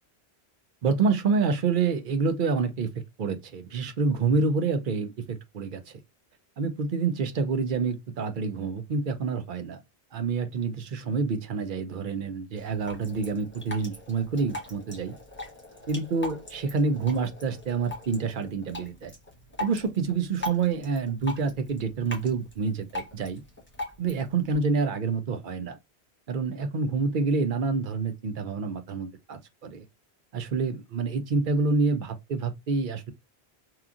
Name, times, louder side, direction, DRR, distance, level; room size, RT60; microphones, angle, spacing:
voice 1, 0.8-2.9 3.2-6.0 6.6-9.8 10.1-15.1 15.9-19.1 19.6-23.4 24.0-25.8 26.3-29.8 30.3-33.1, right 4 dB, 55° right, 0.7 m, -27 dB
Drip, 12.6-24.6, left 1 dB, 10° left, 1.1 m, -41 dB
2.9 x 2.4 x 2.4 m
omnidirectional pair, 1.1 m